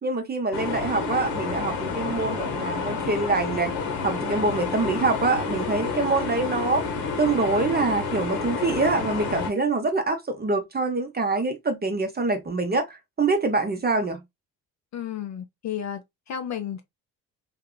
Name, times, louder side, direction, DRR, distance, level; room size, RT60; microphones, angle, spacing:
voice 1, 0.0-3.8 4.0-6.8 7.2-14.2, right 3 dB, 20° right, 0.7 m, -25 dB
sound 1, 0.5-9.5, left 4 dB, 60° left, 1.0 m, -29 dB
voice 2, 14.9-16.8, left 9 dB, 35° left, 0.5 m, -33 dB
2.8 x 2.5 x 2.2 m
hypercardioid pair, 50°, 50 cm